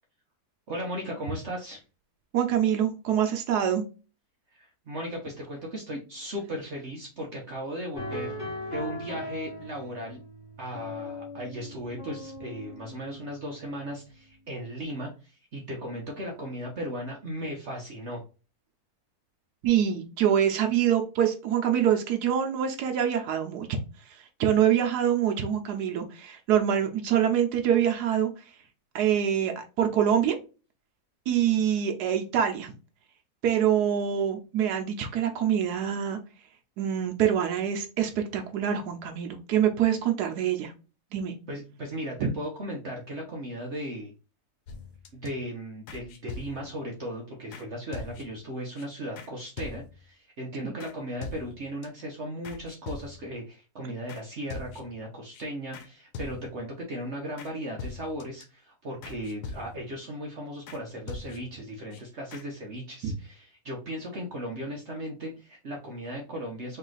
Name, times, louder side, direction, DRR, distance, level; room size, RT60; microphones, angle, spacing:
voice 1, 0.7-1.8 4.5-8.4 8.7-10.2 10.6-18.2 41.5-44.1 45.1-66.8, equal, 50° right, 0 dB, 1.0 m, -37 dB
voice 2, 2.3-3.8 19.6-23.7 24.0-28.5 28.9-30.4 31.3-32.7 33.4-36.2 36.8-40.7 41.1-41.3 42.2-42.3 50.6-50.7 63.0-63.1, right 9 dB, 90° right, 4 dB, 1.2 m, -25 dB
sound 1, 8.0-14.1, left 2 dB, 35° left, 1.6 m, -39 dB
sound 2, 44.7-45.3 45.9-46.8 47.5-47.7 47.9-48.5 48.8-48.9 49.2-49.3 49.6-50.1 50.8-50.9 51.2-51.9 52.4-53.4 54.1-54.2 54.5-55.0 55.3-55.4 55.7-55.9 56.1-56.7 57.4-57.5 57.8-58.4 59.0-60.0 60.7-60.8 61.1-61.6 61.9-62.0 62.3-62.5, left 4 dB, 90° left, 1.2 m, -42 dB
3.3 x 3.0 x 3.8 m, 0.33 s
omnidirectional pair, 1.7 m